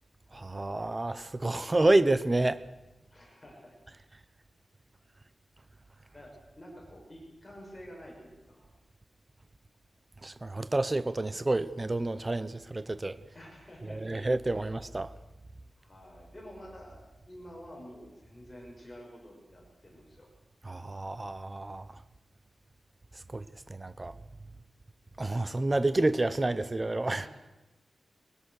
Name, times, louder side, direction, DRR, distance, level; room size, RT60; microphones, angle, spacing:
voice 1, 0.3-2.6 10.2-13.2 13.9-15.1 20.6-21.9 23.3-24.1 25.2-27.2, right 2 dB, 20° right, 0.9 m, -29 dB
voice 2, 3.1-3.8 6.1-8.7 13.3-14.3 14.6-14.7 15.8-20.3 27.2-27.3, equal, 15° left, 6.5 m, -49 dB
22.0 x 20.0 x 6.6 m
wide cardioid pair, 165°, 0 cm